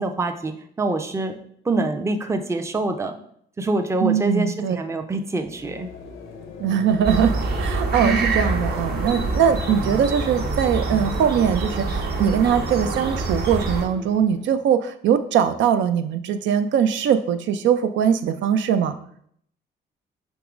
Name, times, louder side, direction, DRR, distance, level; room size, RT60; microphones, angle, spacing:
voice 1, 0.0-1.4 1.6-3.2 3.6-5.9 8.0-8.4, right 2 dB, 15° right, 6 dB, 0.5 m, -25 dB
voice 2, 4.0-4.8 6.6-7.3 7.6-19.0, right 8 dB, 70° right, 9 dB, 0.4 m, -21 dB
sound 1, 5.2-14.6, left 4 dB, 80° left, 0.7 m, -38 dB
sound 2, 7.0-13.8, right 3 dB, 50° right, 0.9 m, -26 dB
3.6 x 3.0 x 4.9 m, 0.66 s
cardioid pair, 90°, 20 cm